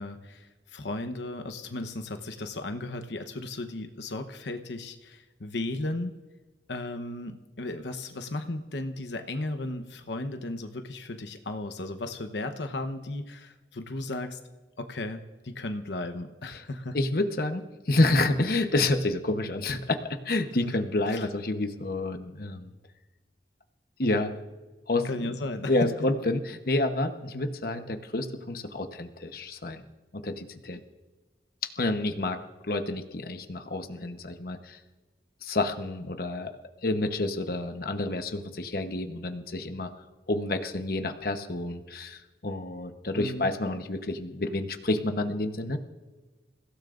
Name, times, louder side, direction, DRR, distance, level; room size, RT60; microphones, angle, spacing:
voice 1, 0.0-6.1 6.7-14.4 14.8-17.0 20.6-20.7 21.1-21.3 25.0-25.7 43.1-43.5, left 2 dB, 80° left, 7 dB, 1.0 m, -35 dB
voice 2, 16.9-22.7 24.0-24.3 24.9-25.3 25.7-29.8 30.1-30.8 31.6-32.4 32.7-34.8 35.4-39.9 40.3-45.8, left 2 dB, 55° left, 6 dB, 1.0 m, -29 dB
29.0 x 16.5 x 2.6 m, 1.3 s
head